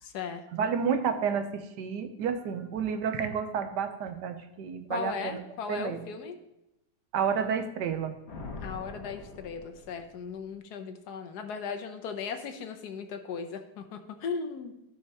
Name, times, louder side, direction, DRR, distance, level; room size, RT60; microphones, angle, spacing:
voice 1, 0.0-0.7 4.9-6.3 8.6-14.7, left 6 dB, 70° left, 7 dB, 1.2 m, -37 dB
voice 2, 0.5-5.4 5.7-6.0 7.1-8.2, right 6 dB, 80° right, 8 dB, 1.3 m, -30 dB
Thunder, 8.3-10.5, left 3 dB, 45° left, 1.3 m, -43 dB
13.5 x 5.6 x 2.9 m, 0.89 s
omnidirectional pair, 1.8 m